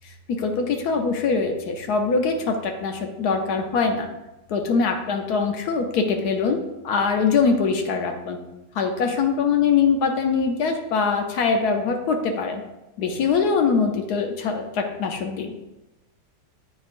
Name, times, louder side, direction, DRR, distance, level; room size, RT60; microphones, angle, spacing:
voice 1, 0.0-4.1 4.5-8.4 8.7-12.6 13.0-15.5, left 5 dB, 70° left, 4 dB, 1.1 m, -23 dB
8.7 x 4.4 x 2.5 m, 0.99 s
omnidirectional pair, 1.9 m